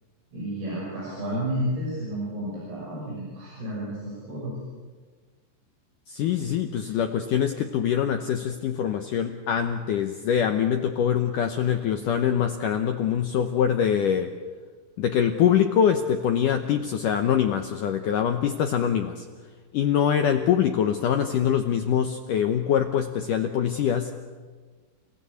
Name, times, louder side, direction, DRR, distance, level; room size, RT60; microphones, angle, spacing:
voice 1, 0.3-4.5, right 1 dB, 60° right, -5 dB, 8.1 m, -31 dB
voice 2, 6.1-14.3 15.0-19.2 19.7-24.2, left 9 dB, 80° left, 6 dB, 1.8 m, -24 dB
29.5 x 17.0 x 8.3 m, 1.5 s
omnidirectional pair, 5.1 m